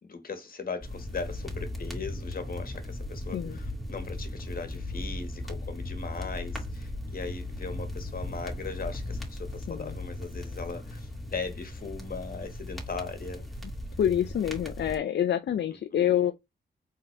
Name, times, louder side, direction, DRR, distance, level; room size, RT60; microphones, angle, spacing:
voice 1, 0.0-13.5 15.9-16.1, left 4 dB, 50° left, 1.5 m, -39 dB
sound 1, 0.8-15.0, left 1 dB, ahead, 2.4 m, -37 dB
voice 2, 14.0-16.3, left 10 dB, 70° left, 0.5 m, -27 dB
4.1 x 3.7 x 3.3 m
cardioid pair, 60°, 19 cm